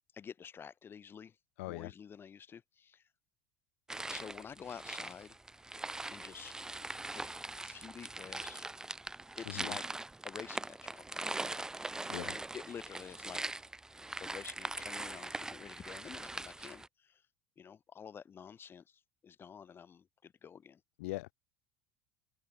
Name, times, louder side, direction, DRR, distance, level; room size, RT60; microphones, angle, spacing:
voice 1, 0.1-1.3 1.7-3.0 4.1-5.4 6.1-6.5 7.1-8.7 9.4-9.8 10.2-11.6 11.9-13.4 14.2-17.2 17.6-20.8, left 7 dB, 30° left, 4.8 m, -49 dB
voice 2, 1.6-1.9 9.5-9.8 12.1-12.4 21.0-21.3, left 21 dB, 80° left, 0.8 m, -40 dB
sound 1, 3.9-16.9, right 2 dB, 10° right, 0.8 m, -42 dB
open air
supercardioid pair, 100°, 7 cm